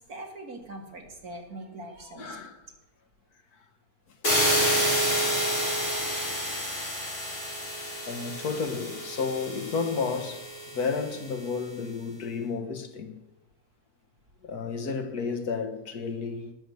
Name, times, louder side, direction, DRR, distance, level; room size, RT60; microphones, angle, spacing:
voice 1, 0.1-2.5, right 1 dB, 70° right, 2.9 m, -42 dB
voice 2, 2.2-2.6 8.1-10.5 10.7-13.1 14.4-16.5, left 5 dB, 85° left, 1.9 m, -32 dB
sound 1, 4.2-11.1, equal, 50° left, 6.0 m, -29 dB
18.5 x 7.1 x 7.9 m
omnidirectional pair, 1.6 m